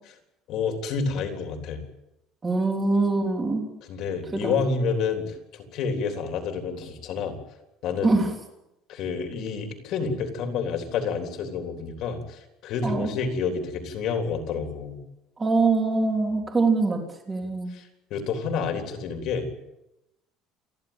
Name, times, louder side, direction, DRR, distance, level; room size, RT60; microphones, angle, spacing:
voice 1, 0.5-1.8 3.9-7.4 7.8-8.2 8.9-15.0 17.7-17.8 18.1-19.5, left 5 dB, 50° left, 4 dB, 3.6 m, -29 dB
voice 2, 2.4-3.6 4.4-4.6 8.0-8.3 12.8-13.1 15.4-17.0 17.3-17.7, right 3 dB, 15° right, 2 dB, 3.5 m, -23 dB
29.0 x 11.5 x 8.9 m, 0.91 s
cardioid pair, 170°, 0 cm